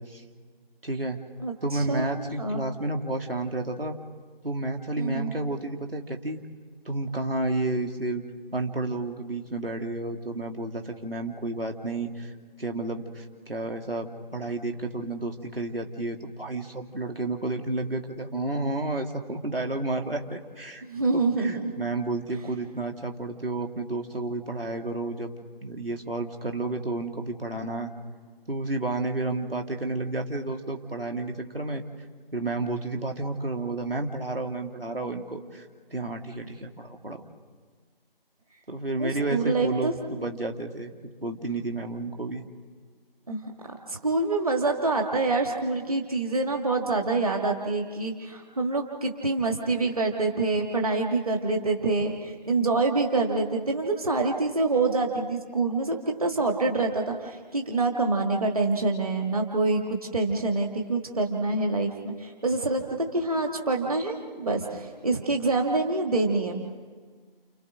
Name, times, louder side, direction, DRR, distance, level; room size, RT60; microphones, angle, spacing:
voice 1, 0.8-1.2 1.6-4.0 4.4-6.4 6.8-8.2 8.5-12.3 12.6-20.8 21.1-25.3 25.6-27.9 28.5-31.8 32.3-35.7 35.9-37.2 38.7-40.9 41.2-42.4, right 2 dB, 70° right, 3 dB, 2.6 m, -31 dB
voice 2, 1.4-2.1 2.4-2.6 5.0-5.3 20.8-21.5 39.0-39.9 43.3-66.6, right 3 dB, 40° right, 2 dB, 1.8 m, -26 dB
29.5 x 29.5 x 3.9 m, 1.5 s
figure-of-eight pair, 160°, 30 cm